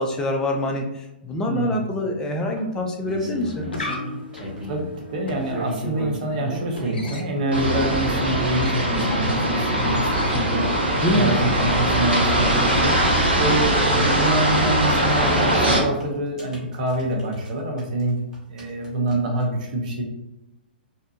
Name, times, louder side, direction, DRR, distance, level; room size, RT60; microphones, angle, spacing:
voice 1, 0.0-3.7 11.0-11.4, left 1 dB, 10° left, 1 dB, 0.4 m, -25 dB
voice 2, 1.4-1.8 4.7-10.7 11.1-18.2 18.5-20.0, right 1 dB, 45° right, 1 dB, 0.6 m, -26 dB
sound 1, 2.6-4.9 5.3-7.2 8.2-8.3 8.7-8.8 9.0-9.1 9.4-9.5 11.4-11.5 11.8-11.9 13.8-14.0 14.7-17.5 17.8-19.4, right 1 dB, 10° right, 0.8 m, -35 dB
sound 2, 3.3-13.3, left 2 dB, 70° left, 0.5 m, -37 dB
sound 3, 7.5-15.8, right 1 dB, 80° right, 0.7 m, -21 dB
2.6 x 2.1 x 2.7 m, 0.95 s
figure-of-eight pair, 115°, 6 cm